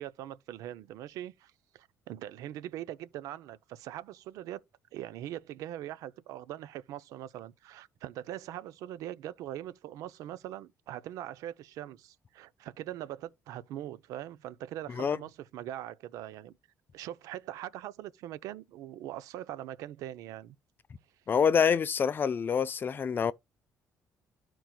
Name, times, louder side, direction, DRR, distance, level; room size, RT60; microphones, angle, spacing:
voice 1, 0.0-4.6 4.9-16.6 16.9-20.6, right 12 dB, 80° right, 0.4 m, -42 dB
voice 2, 21.3-23.3, left 7 dB, 35° left, 0.4 m, -26 dB
12.5 x 4.5 x 2.2 m
cardioid pair, 105°, 6 cm